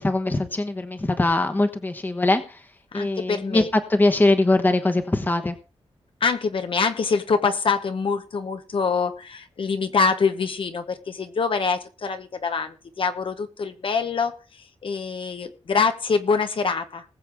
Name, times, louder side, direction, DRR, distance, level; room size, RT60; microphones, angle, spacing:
voice 1, 0.0-2.4 2.9-3.6 3.9-5.5, left 2 dB, 15° left, 7 dB, 1.1 m, -21 dB
voice 2, 2.9-3.7 6.2-17.0, left 5 dB, 55° left, 8 dB, 1.0 m, -25 dB
20.0 x 7.8 x 3.5 m, 0.33 s
wide cardioid pair, 170°, 11 cm